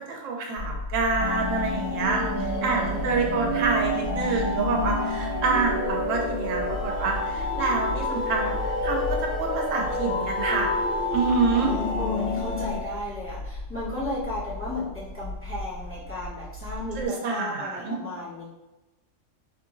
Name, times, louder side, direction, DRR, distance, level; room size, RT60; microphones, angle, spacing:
voice 1, 0.1-2.2 2.6-10.7 11.1-11.7 17.0-18.0, right 4 dB, 85° right, 1 dB, 1.0 m, -27 dB
sound 1, 0.5-17.1, left 1 dB, 45° right, 1.5 m, -36 dB
sound 2, 1.2-12.8, left 2 dB, 50° left, 0.6 m, -29 dB
voice 2, 2.0-3.6 11.5-18.4, left 2 dB, 10° left, -11 dB, 1.3 m, -35 dB
3.7 x 3.0 x 2.5 m, 1.0 s
omnidirectional pair, 1.3 m